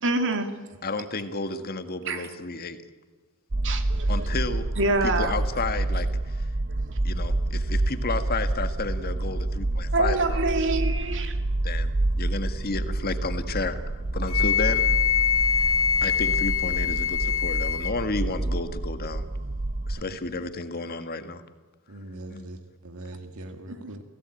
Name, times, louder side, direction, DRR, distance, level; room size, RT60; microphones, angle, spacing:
voice 1, 0.0-0.8 2.0-2.3 3.6-4.3 4.8-5.4 6.7-7.0 9.9-11.4 23.4-24.0, right 2 dB, 60° right, 6 dB, 2.7 m, -27 dB
voice 2, 0.8-2.8 4.1-4.7 5.0-6.5 7.0-10.4 11.6-14.9 15.6-15.7 16.0-19.3 19.9-21.4 22.3-22.5, left 3 dB, 45° left, 9 dB, 1.7 m, -32 dB
sound 1, 3.5-20.0, right 2 dB, 40° right, 0.7 m, -28 dB
Wind instrument woodwind instrument, 14.3-18.0, left 8 dB, 65° left, 1.1 m, -24 dB
voice 3, 21.9-24.0, right 1 dB, 85° right, 6 dB, 1.7 m, -41 dB
29.0 x 17.5 x 9.0 m, 1.4 s
head